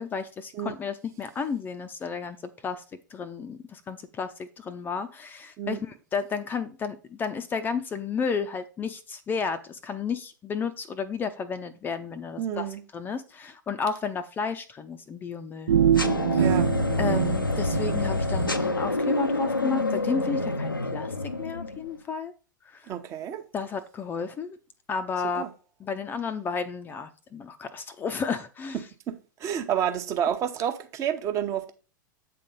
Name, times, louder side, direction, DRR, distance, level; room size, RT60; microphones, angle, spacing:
voice 1, 0.0-2.4 2.6-2.8 3.1-12.7 12.9-15.7 16.3-16.5 17.0-22.3 22.7-22.9 23.5-24.6 24.9-25.5 25.8-28.8, left 5 dB, 20° left, 0.5 m, -32 dB
voice 2, 12.4-12.8 16.4-16.7 22.9-23.4 25.3-25.5 29.1-31.7, right 9 dB, 30° right, 0.9 m, -29 dB
sound 1, 15.7-18.5, right 9 dB, 60° right, 0.5 m, -25 dB
sound 2, 16.0-21.9, left 2 dB, 85° left, 0.6 m, -27 dB
8.2 x 3.8 x 5.3 m
figure-of-eight pair, 95°, 11 cm